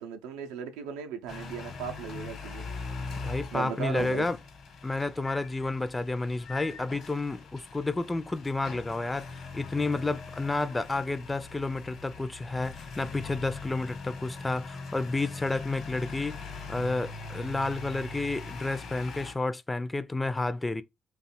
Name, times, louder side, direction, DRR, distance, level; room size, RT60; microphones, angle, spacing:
voice 1, 0.0-2.7 3.5-4.3, right 7 dB, 75° right, 0.5 m, -37 dB
sound 1, 1.3-19.3, left 4 dB, 55° left, 1.0 m, -41 dB
voice 2, 3.2-4.4 4.8-16.4 16.7-20.8, left 2 dB, 20° left, 0.4 m, -31 dB
2.7 x 2.3 x 4.2 m
hypercardioid pair, 45°, 0 cm